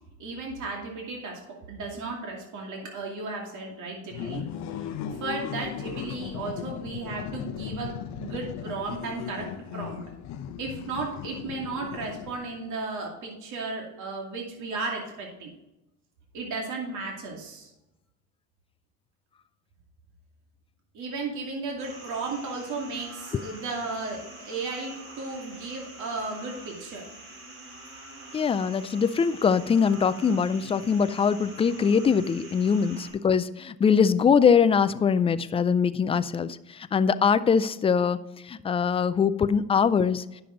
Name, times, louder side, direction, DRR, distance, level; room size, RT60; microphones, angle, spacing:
voice 1, 0.2-4.4 4.7-9.5 9.7-10.0 10.6-15.5 16.3-17.7 20.9-27.0 32.9-33.1, right 3 dB, 55° right, -1 dB, 2.5 m, -35 dB
sound 1, 4.1-12.7, left 9 dB, 50° left, 0.8 m, -37 dB
sound 2, 21.8-33.1, right 2 dB, 40° right, 3.7 m, -46 dB
voice 2, 28.3-38.2 38.5-40.2, left 6 dB, 20° left, 13 dB, 0.3 m, -22 dB
10.0 x 6.9 x 3.9 m, 0.93 s
cardioid pair, 110°, 35 cm